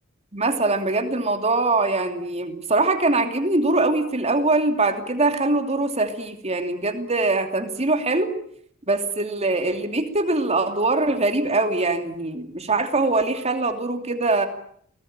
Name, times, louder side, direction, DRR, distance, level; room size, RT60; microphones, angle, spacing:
voice 1, 0.3-8.3 8.9-14.5, right 2 dB, 30° right, 7 dB, 2.8 m, -22 dB
29.0 x 20.0 x 8.9 m, 0.66 s
head